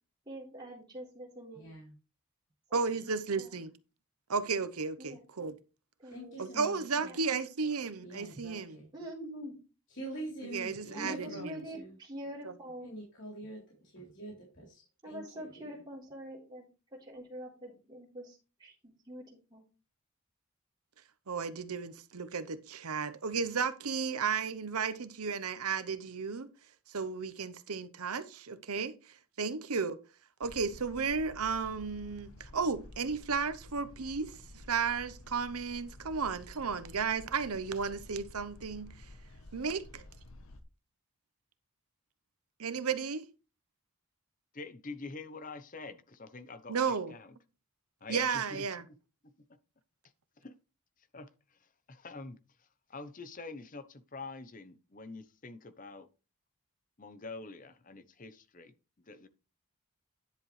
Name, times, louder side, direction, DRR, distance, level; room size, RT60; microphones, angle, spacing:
voice 1, 0.3-1.7 2.7-2.8 3.1-3.5 5.0-5.2 6.0-6.6 7.0-7.2 8.9-9.6 10.9-12.9 15.0-16.7 16.9-19.6, equal, 20° right, 3.8 m, -45 dB
voice 2, 1.5-1.9 6.1-7.1 8.0-8.9 9.9-11.5 11.7-11.9 12.8-15.7, right 1 dB, 55° left, 3.7 m, -45 dB
voice 3, 2.7-3.7 4.3-5.5 6.4-8.8 10.5-11.6 12.4-12.5 21.3-26.5 26.9-28.9 29.4-30.0 30.4-34.4 34.7-38.9 39.5-40.0 42.6-43.3 46.7-47.1 48.1-48.8, right 5 dB, 85° right, 0.9 m, -34 dB
sound 1, 30.4-40.6, left 1 dB, 75° left, 1.1 m, -52 dB
voice 4, 44.5-47.4 48.0-48.8 49.2-49.3 50.4-50.6 51.0-56.1 57.0-59.3, left 3 dB, 35° left, 0.8 m, -46 dB
10.5 x 7.5 x 3.3 m
head